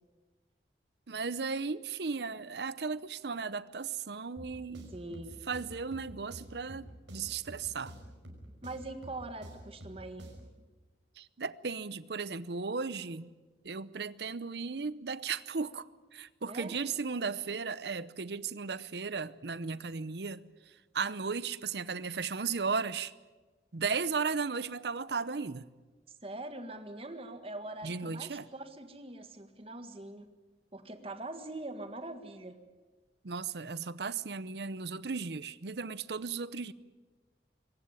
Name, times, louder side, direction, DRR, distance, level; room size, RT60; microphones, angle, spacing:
voice 1, 1.1-4.9 5.5-7.9 11.2-13.3 13.6-20.4 20.9-23.1 23.7-25.7 27.8-28.5 33.2-36.7, right 5 dB, 70° right, 0.8 m, -36 dB
sound 1, 4.4-10.6, equal, 90° right, 5.6 m, -49 dB
voice 2, 4.9-5.4 8.6-10.3 16.4-16.8 26.2-30.3 30.7-32.6, right 2 dB, 30° right, 1.7 m, -43 dB
23.0 x 18.0 x 9.8 m
head